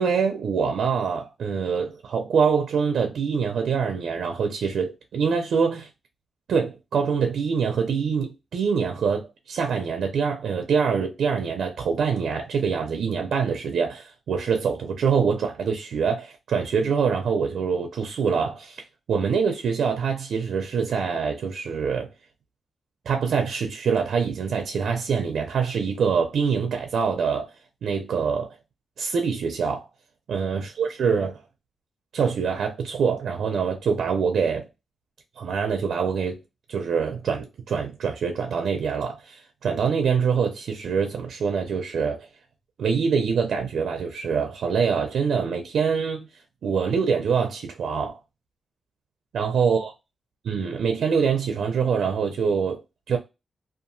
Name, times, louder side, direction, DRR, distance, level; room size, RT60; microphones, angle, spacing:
voice 1, 0.0-5.9 6.5-22.1 23.1-27.5 27.8-28.6 29.0-29.9 30.3-31.4 32.1-34.7 35.4-36.4 36.7-42.3 42.8-46.3 46.6-48.2 49.3-49.9 50.4-52.8 53.1-53.2, right 6 dB, 85° right, 0.5 m, -25 dB
2.7 x 2.3 x 2.6 m
wide cardioid pair, 130°, 0 cm